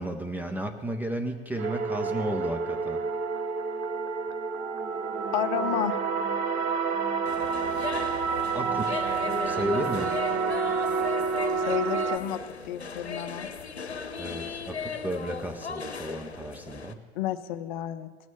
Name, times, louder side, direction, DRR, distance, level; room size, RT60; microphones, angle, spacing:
voice 1, 0.0-3.0 8.5-9.1 9.5-10.1 14.2-17.0, right 1 dB, 5° right, 6 dB, 0.5 m, -33 dB
sound 1, 1.6-12.2, right 5 dB, 30° right, 0.9 m, -29 dB
voice 2, 5.3-6.0 11.6-12.4 12.6-13.5 17.2-18.1, left 12 dB, 45° left, 11 dB, 0.6 m, -31 dB
sound 2, 7.2-16.9, left 5 dB, 85° left, 0.8 m, -37 dB
17.5 x 6.2 x 7.1 m, 1.5 s
figure-of-eight pair, 95°, 32 cm